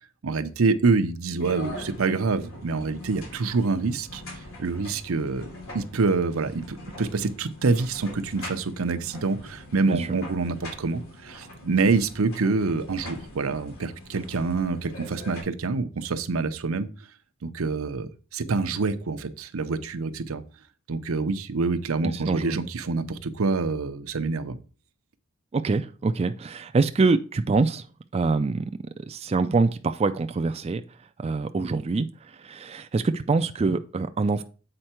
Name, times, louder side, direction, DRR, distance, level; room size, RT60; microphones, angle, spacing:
voice 1, 0.2-4.2 4.6-5.5 5.7-16.9 17.4-20.4 20.9-24.6, right 4 dB, 85° right, 0.7 m, -26 dB
sound 1, 1.4-15.4, left 1 dB, 85° left, 2.7 m, -43 dB
voice 2, 22.0-22.6 25.5-27.8 28.1-28.6 29.1-30.8 31.2-32.1 32.4-34.4, right 3 dB, 30° right, 0.3 m, -25 dB
7.8 x 4.5 x 4.3 m
head